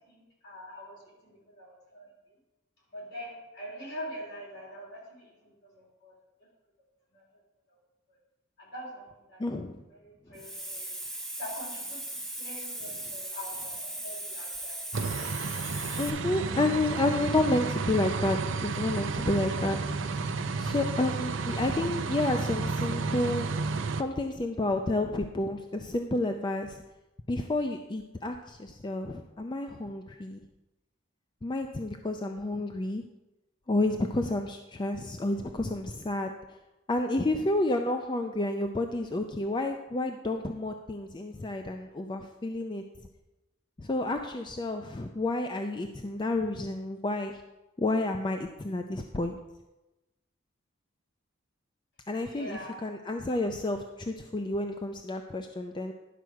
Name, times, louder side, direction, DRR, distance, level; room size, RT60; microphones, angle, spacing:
voice 1, 0.1-2.1 2.9-6.1 6.4-6.5 7.1-7.3 7.7-7.8 8.1-8.2 8.6-9.4 9.9-14.8 19.5-19.7 52.2-52.8, equal, 60° left, -3 dB, 3.3 m, -44 dB
voice 2, 9.4-9.8 16.0-18.4 18.6-19.8 20.6-23.5 24.0-26.8 27.3-30.4 31.4-33.0 33.7-36.3 36.9-42.8 43.8-47.4 47.8-49.4 52.1-55.9, left 2 dB, 25° left, 5 dB, 0.4 m, -30 dB
Hiss, 10.3-16.1, right 1 dB, ahead, 0.9 m, -38 dB
sound 1, 14.9-24.0, right 4 dB, 70° right, 0.6 m, -32 dB
11.0 x 6.4 x 4.6 m, 1.0 s
head